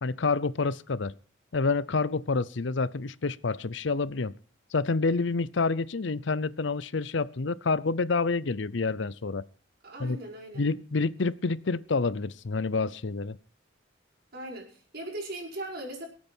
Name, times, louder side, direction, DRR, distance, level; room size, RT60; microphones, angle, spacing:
voice 1, 0.0-1.1 1.5-4.3 4.7-9.4 10.0-10.2 10.5-13.4, left 4 dB, 70° left, 19 dB, 0.7 m, -28 dB
voice 2, 9.8-10.7 14.3-16.1, right 1 dB, 55° right, -1 dB, 5.2 m, -39 dB
24.0 x 8.7 x 4.5 m, 0.41 s
head